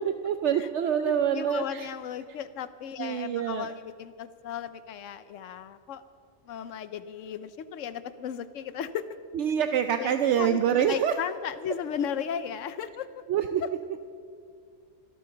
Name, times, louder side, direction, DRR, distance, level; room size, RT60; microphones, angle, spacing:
voice 1, 0.2-1.9 3.0-3.7 9.3-11.1 13.3-13.6, right 9 dB, 70° right, 8 dB, 0.9 m, -26 dB
voice 2, 1.0-6.0 6.4-9.0 10.0-13.1, left 8 dB, 85° left, 13 dB, 1.0 m, -35 dB
26.0 x 13.0 x 3.9 m, 2.3 s
omnidirectional pair, 1.3 m